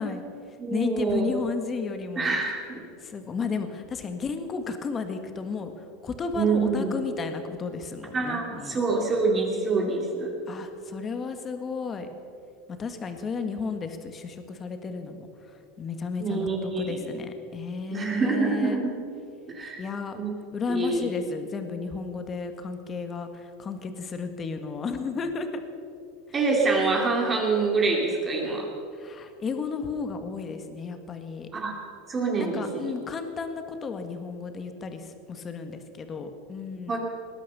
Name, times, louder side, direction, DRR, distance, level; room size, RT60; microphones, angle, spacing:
voice 1, 0.0-2.3 3.0-5.7 6.0-8.8 10.5-12.1 12.7-18.8 19.8-20.2 20.5-25.6 28.9-31.5 32.4-36.9, left 5 dB, 25° left, 7 dB, 1.6 m, -33 dB
voice 2, 0.6-1.3 2.2-2.8 6.4-6.9 8.1-10.4 16.2-17.0 17.9-18.9 19.5-19.8 20.2-20.3 20.7-21.1 26.3-28.7 31.5-31.8 32.1-32.9 36.9-37.0, right 4 dB, 25° right, 0 dB, 2.7 m, -26 dB
19.5 x 10.5 x 6.8 m, 2.5 s
supercardioid pair, 130°, 0 cm